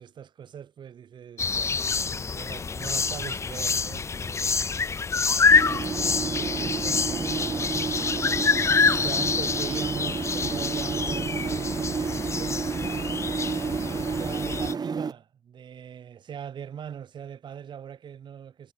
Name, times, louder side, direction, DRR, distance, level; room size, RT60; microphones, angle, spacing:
voice 1, 0.0-4.6 4.8-13.1 13.9-18.7, right 8 dB, 85° right, 1.2 m, -42 dB
sound 1, 1.4-14.7, left 5 dB, 40° left, 0.3 m, -26 dB
sound 2, 5.5-15.1, right 5 dB, 60° right, 1.5 m, -31 dB
cardioid pair, 70°, 8 cm